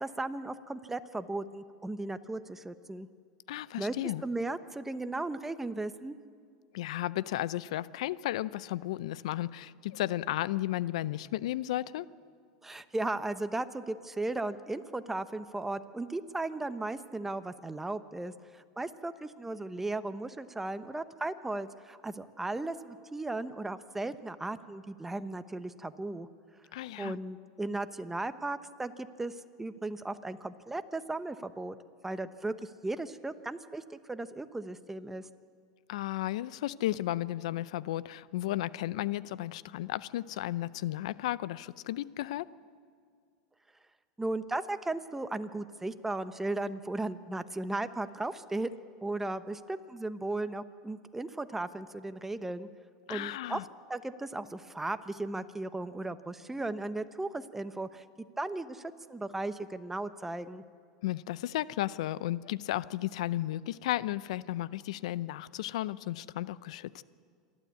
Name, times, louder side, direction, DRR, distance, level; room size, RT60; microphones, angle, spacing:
voice 1, 0.0-3.1 3.8-3.9 4.2-6.2 12.6-26.3 27.0-31.8 32.0-35.3 44.2-48.7 49.0-52.7 53.1-53.6 53.9-58.0 58.4-60.6, right 2 dB, 10° right, 11 dB, 0.9 m, -36 dB
voice 2, 3.5-4.2 6.7-12.1 26.7-27.2 35.9-42.5 53.1-53.6 61.0-67.0, left 14 dB, 75° left, 18 dB, 0.6 m, -34 dB
27.0 x 12.0 x 8.4 m, 2.2 s
hypercardioid pair, 105°, 3 cm